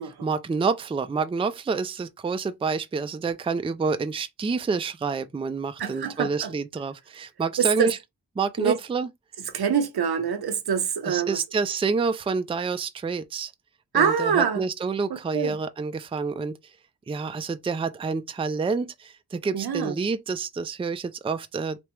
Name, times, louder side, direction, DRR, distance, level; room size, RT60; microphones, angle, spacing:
voice 1, 0.2-8.0 8.4-9.1 11.0-13.5 13.9-16.6 17.1-21.8, right 4 dB, 15° right, 0.3 m, -28 dB
voice 2, 5.8-6.5 7.6-7.9 8.6-8.8 9.5-11.4 13.9-14.6 15.3-15.6 19.5-20.0, right 7 dB, 85° right, 0.8 m, -25 dB
3.4 x 3.2 x 3.0 m
wide cardioid pair, 115°, 37 cm